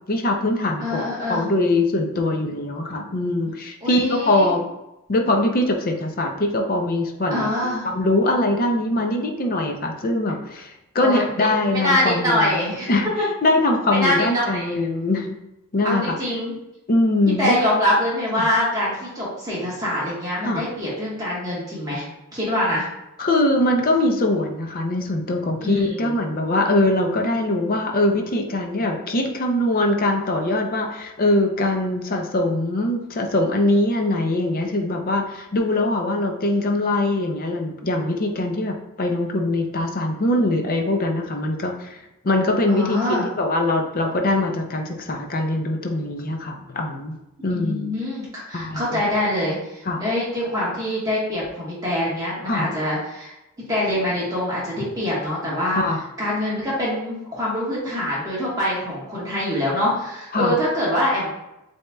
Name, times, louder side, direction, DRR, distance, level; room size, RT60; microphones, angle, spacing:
voice 1, 0.1-4.7 5.1-12.6 12.9-13.1 13.4-15.4 15.7-16.0 16.9-17.6 18.4-18.5 20.4-20.6 23.2-42.0 42.2-47.2 47.4-47.9 48.5-49.0 49.9-50.0 52.5-52.7 55.8-56.0 60.3-60.6, left 2 dB, 40° left, 3 dB, 0.5 m, -22 dB
voice 2, 0.8-1.4 3.8-4.5 7.3-7.9 11.0-12.9 13.9-14.7 15.8-16.5 17.4-22.1 22.3-22.9 25.6-26.1 42.7-43.3 47.5-53.3 53.7-55.8 56.2-61.3, left 1 dB, 15° right, -8 dB, 1.3 m, -24 dB
7.8 x 2.8 x 2.3 m, 0.91 s
head